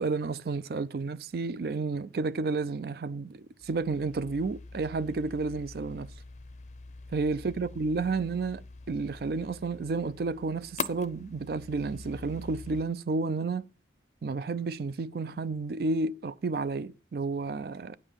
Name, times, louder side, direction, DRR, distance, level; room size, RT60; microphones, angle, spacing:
voice 1, 0.0-6.1 7.1-13.7 14.2-18.0, right 3 dB, 55° right, 0.4 m, -31 dB
sound 1, 3.6-12.8, left 4 dB, 40° left, 0.5 m, -44 dB
9.6 x 5.4 x 7.1 m
head